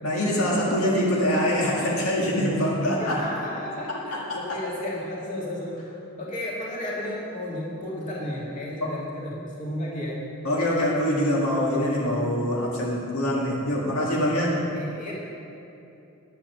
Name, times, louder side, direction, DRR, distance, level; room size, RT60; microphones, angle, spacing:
voice 1, 0.0-3.2 4.3-4.4 8.8-8.9 10.4-14.5, equal, 80° left, -4 dB, 2.0 m, -24 dB
voice 2, 3.0-10.2 14.2-14.5 14.7-15.1, left 1 dB, 35° left, -5 dB, 2.5 m, -33 dB
10.0 x 8.6 x 7.1 m, 2.7 s
head